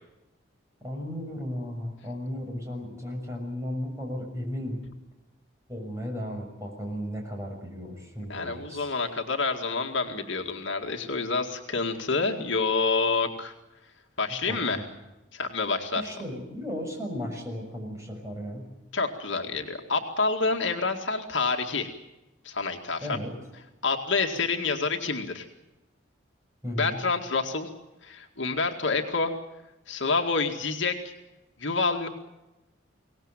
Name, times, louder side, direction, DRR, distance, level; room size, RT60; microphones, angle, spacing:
voice 1, 0.8-4.8 5.7-8.9 14.3-14.8 15.9-18.7 23.0-23.3 26.6-27.0, equal, 15° right, 0 dB, 6.4 m, -35 dB
voice 2, 8.3-13.5 14.2-14.8 15.3-16.0 18.9-21.9 22.4-23.2 23.8-25.5 26.8-27.7 28.0-29.3 29.9-31.1 31.6-32.1, left 4 dB, 70° left, 3 dB, 2.1 m, -28 dB
24.5 x 18.5 x 9.0 m, 0.99 s
head